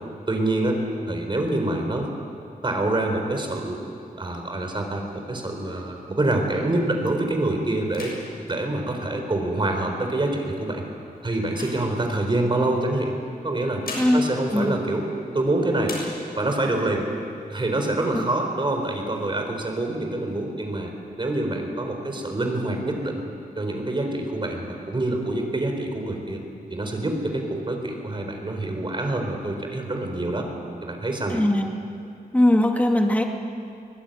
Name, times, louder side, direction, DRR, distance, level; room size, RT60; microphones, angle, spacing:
voice 1, 0.3-0.8 1.1-2.1 2.6-3.8 4.2-8.1 8.5-10.8 11.2-13.2 13.4-13.8 14.1-15.0 15.3-16.0 16.4-17.1 17.5-20.9 21.2-23.2 23.6-26.4 26.7-30.5 30.8-31.4, right 2 dB, 30° right, 3 dB, 4.3 m, -26 dB
sound 1, 4.6-6.8 7.2-7.5 7.8-9.7 10.4-12.5 13.4-15.5 15.8-16.7 17.1-17.2 17.5-18.1 18.6-19.5, left 2 dB, 75° left, 7.0 m, -41 dB
voice 2, 31.3-31.7 32.3-33.2, left 1 dB, 10° left, 2 dB, 2.4 m, -20 dB
23.0 x 19.5 x 9.3 m, 2.5 s
wide cardioid pair, 120°, 15 cm